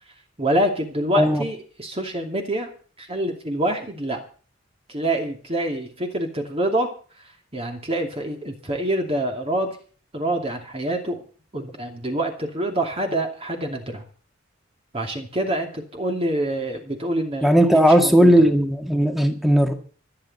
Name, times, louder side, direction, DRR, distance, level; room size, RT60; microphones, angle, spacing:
voice 1, 0.4-2.7 3.0-4.2 4.9-6.9 7.5-9.8 10.1-11.2 11.5-14.0 14.9-18.4, right 1 dB, 30° right, 3 dB, 2.6 m, -26 dB
voice 2, 17.4-19.7, equal, ahead, 5 dB, 2.0 m, -16 dB
26.5 x 8.9 x 4.2 m, 0.41 s
head